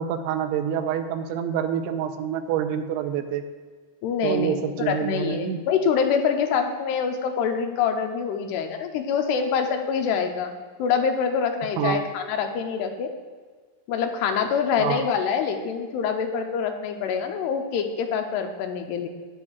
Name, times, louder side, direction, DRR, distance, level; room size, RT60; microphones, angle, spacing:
voice 1, 0.0-3.5 4.2-5.6 11.8-12.0 14.8-15.1, right 9 dB, 85° right, 8 dB, 2.6 m, -27 dB
voice 2, 4.0-4.6 4.9-13.1 13.9-19.1, left 6 dB, 90° left, 5 dB, 2.7 m, -25 dB
12.0 x 9.7 x 2.4 m, 1.5 s
omnidirectional pair, 4.7 m